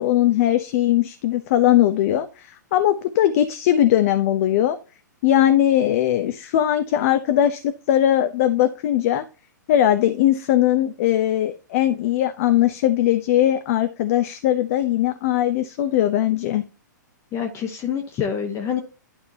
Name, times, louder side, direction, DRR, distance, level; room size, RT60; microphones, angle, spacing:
voice 1, 0.0-4.8 5.2-9.2 9.7-16.6, left 12 dB, 45° left, 0.8 m, -20 dB
voice 2, 17.3-18.8, left 8 dB, 30° left, 1.3 m, -26 dB
11.5 x 5.2 x 2.9 m
figure-of-eight pair, 115°, 10 cm